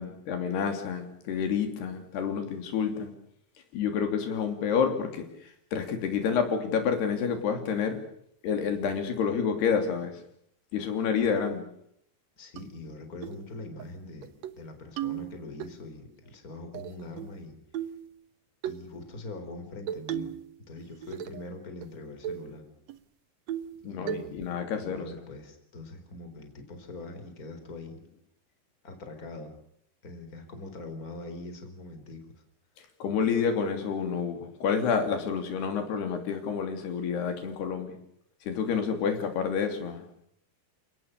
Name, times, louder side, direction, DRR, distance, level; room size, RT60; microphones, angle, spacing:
voice 1, 0.0-3.1 3.7-5.3 5.7-8.0 8.4-10.1 10.7-11.7 23.9-25.1 33.0-38.0 38.5-40.0, left 6 dB, 85° left, 6 dB, 5.2 m, -29 dB
voice 2, 12.4-17.5 18.6-20.3 20.7-22.7 23.9-24.5 24.8-28.0 28.8-29.5 30.0-32.2, left 2 dB, 20° left, 7 dB, 4.3 m, -43 dB
sound 1, 12.6-12.7 13.2-13.4 13.8-13.9 14.2-14.6 15.0-15.7 16.7-17.4 17.7-18.1 18.6-18.8 19.9-20.5 20.8-21.5 21.8-21.9 22.2-22.5 22.9-23.0 23.5-23.8 24.1-24.5, right 11 dB, 65° right, 1.8 m, -35 dB
29.5 x 18.5 x 6.7 m, 0.70 s
omnidirectional pair, 4.5 m